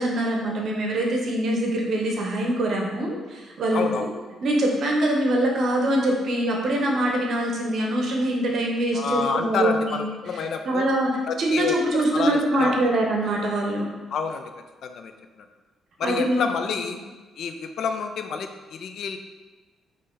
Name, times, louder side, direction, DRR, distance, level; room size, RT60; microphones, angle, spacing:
voice 1, 0.0-3.8 4.4-10.0 10.7-11.1 11.4-13.9 16.0-16.4, right 1 dB, 60° right, 0 dB, 0.9 m, -23 dB
voice 2, 3.7-4.1 8.9-10.9 11.3-12.8 14.1-14.5 14.8-15.1 15.4-15.5 16.0-17.0 17.4-19.2, left 5 dB, 65° left, 7 dB, 0.4 m, -28 dB
4.1 x 3.1 x 3.8 m, 1.3 s
cardioid pair, 90°, 0 cm